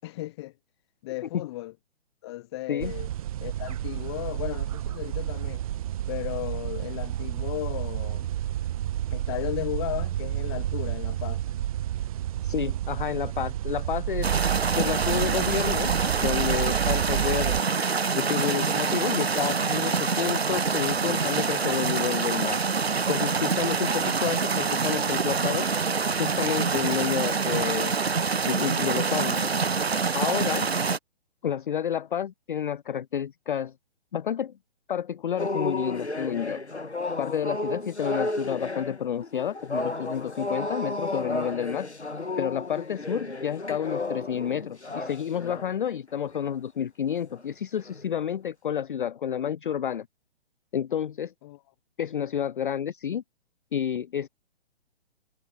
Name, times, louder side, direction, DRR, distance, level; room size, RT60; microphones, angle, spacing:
voice 1, 0.0-0.5 1.0-1.7 2.2-3.1 3.4-5.6 6.1-8.3 9.1-11.4 51.4-51.6, left 17 dB, 25° left, 1.1 m, -35 dB
sound 1, 2.8-17.6, right 12 dB, 35° right, 1.2 m, -30 dB
voice 2, 12.4-14.3 14.7-15.9 16.2-17.6 18.2-22.6 23.1-25.7 26.2-27.9 28.5-29.7 30.1-30.8 31.4-33.7 34.1-34.5 34.9-36.6 37.2-41.9 42.4-50.1 50.7-51.3 52.0-53.2 53.7-54.3, left 9 dB, 50° left, 0.4 m, -30 dB
sound 2, 14.2-31.0, right 5 dB, 70° right, 1.3 m, -26 dB
sound 3, 35.4-45.8 46.3-46.5 47.1-47.4 47.8-48.1, left 2 dB, 85° left, 1.9 m, -33 dB
figure-of-eight pair, 130°, 33 cm